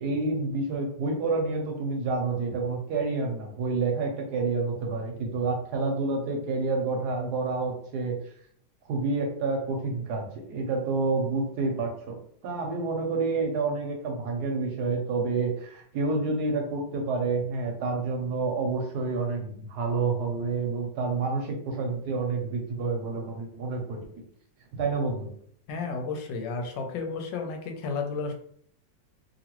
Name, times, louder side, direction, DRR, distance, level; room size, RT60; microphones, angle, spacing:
voice 1, 0.0-8.2 8.9-24.0 24.7-25.3, right 3 dB, 70° right, 2 dB, 1.1 m, -29 dB
voice 2, 25.7-28.3, left 4 dB, 80° left, 3 dB, 1.3 m, -32 dB
3.0 x 2.6 x 2.9 m, 0.63 s
omnidirectional pair, 1.9 m